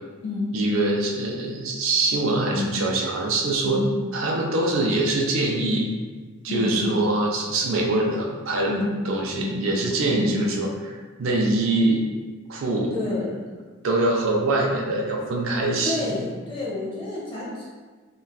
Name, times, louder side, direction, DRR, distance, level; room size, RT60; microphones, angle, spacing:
voice 1, 0.5-3.8 4.1-5.9 6.4-8.8 9.0-12.0 12.5-12.9 13.8-16.2, right 2 dB, 65° right, -1 dB, 0.4 m, -24 dB
voice 2, 6.5-6.9 8.7-8.9 9.4-9.6 10.1-10.4 12.9-13.4 15.8-17.6, left 2 dB, 25° left, -7 dB, 0.9 m, -29 dB
3.8 x 2.2 x 2.3 m, 1.4 s
head